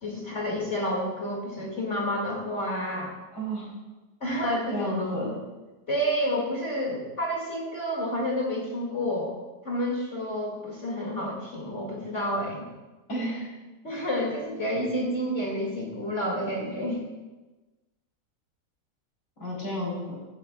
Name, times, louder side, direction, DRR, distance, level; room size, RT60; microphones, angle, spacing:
voice 1, 0.0-3.1 4.2-5.4 5.9-9.4 9.6-12.7 13.8-17.0, equal, 45° left, -2 dB, 2.4 m, -29 dB
voice 2, 3.3-3.7 4.7-5.3 13.1-13.5 19.4-20.2, equal, 90° left, -4 dB, 4.2 m, -31 dB
17.0 x 15.0 x 2.3 m, 1.2 s
omnidirectional pair, 1.9 m